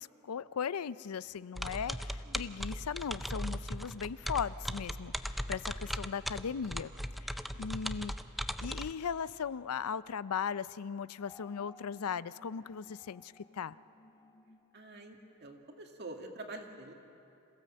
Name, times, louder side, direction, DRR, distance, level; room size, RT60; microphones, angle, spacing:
voice 1, 0.0-6.9 7.2-8.2 8.6-13.8, left 7 dB, 85° left, 17 dB, 0.5 m, -38 dB
sound 1, 1.6-8.9, equal, ahead, 0.4 m, -38 dB
sound 2, 11.2-15.8, left 1 dB, 20° left, 1.0 m, -59 dB
voice 2, 14.7-16.9, right 2 dB, 50° right, 2 dB, 2.2 m, -46 dB
27.0 x 16.0 x 7.7 m, 2.7 s
head